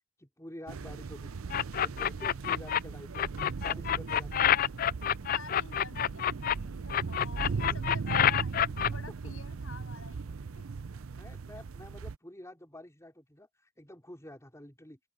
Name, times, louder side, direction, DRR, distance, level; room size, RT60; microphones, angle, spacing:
voice 1, 0.2-1.4 1.8-3.3 3.6-4.6 11.1-15.0, left 1 dB, 15° left, 4.6 m, -49 dB
sound 1, 0.7-12.2, right 4 dB, 90° right, 0.6 m, -38 dB
sound 2, 1.5-2.8 3.1-6.5 6.9-8.9, left 10 dB, 45° left, 0.3 m, -27 dB
voice 2, 5.2-10.6, left 3 dB, 75° left, 7.2 m, -49 dB
head